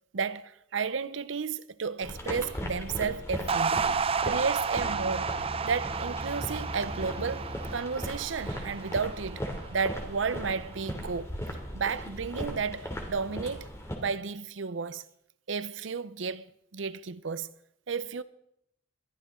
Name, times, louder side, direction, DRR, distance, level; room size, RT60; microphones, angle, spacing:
voice 1, 0.1-3.9 4.2-5.4 5.6-9.5 9.7-11.3 11.7-13.7 14.0-15.0 15.5-17.5 17.9-18.2, right 5 dB, 75° right, 0.7 m, -32 dB
sound 1, 2.0-14.0, equal, 15° left, 2.7 m, -38 dB
sound 2, 3.5-10.0, right 5 dB, 30° right, 0.5 m, -32 dB
sound 3, 4.8-10.7, left 1 dB, 15° right, 2.6 m, -43 dB
21.5 x 14.0 x 3.7 m
head